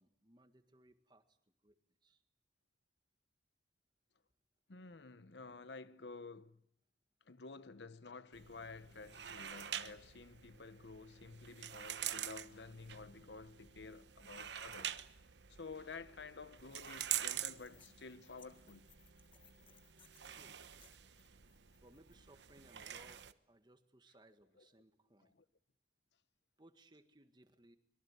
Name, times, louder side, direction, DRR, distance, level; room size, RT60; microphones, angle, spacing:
voice 1, 0.0-1.4 1.6-2.2 20.2-20.6 21.8-25.3 26.6-27.8, right 1 dB, 25° right, 1.7 m, -65 dB
voice 2, 4.7-6.6 7.3-15.0 15.5-18.9 24.6-24.7 25.3-25.4, left 4 dB, 85° left, 1.0 m, -52 dB
sound 1, 8.3-23.3, right 11 dB, 90° right, 1.0 m, -46 dB
sound 2, 16.6-22.1, left 7 dB, 30° left, 1.7 m, -68 dB
24.5 x 22.5 x 8.1 m
head